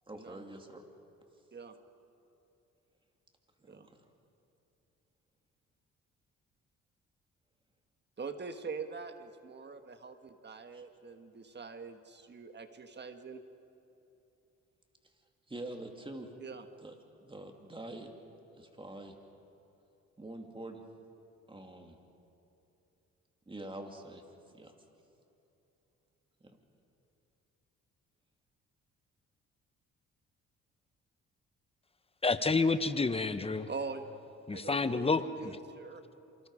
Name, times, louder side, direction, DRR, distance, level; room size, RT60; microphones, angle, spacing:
voice 1, 0.1-0.8 3.6-3.8 10.7-10.8 15.5-16.3 16.8-17.0 17.2-18.1 18.6-19.1 20.2-20.8 21.5-21.9 23.5-24.2 24.5-24.7 26.4-26.6, right 1 dB, 15° right, 3 dB, 2.8 m, -45 dB
voice 2, 8.2-13.4 16.4-16.7 33.7-34.1 34.5-35.1 35.4-36.0, right 4 dB, 35° right, 8 dB, 1.5 m, -43 dB
voice 3, 32.2-33.7 34.5-35.5, left 3 dB, 20° left, 11 dB, 1.0 m, -29 dB
27.5 x 25.0 x 5.0 m, 2.9 s
cardioid pair, 90°, 30 cm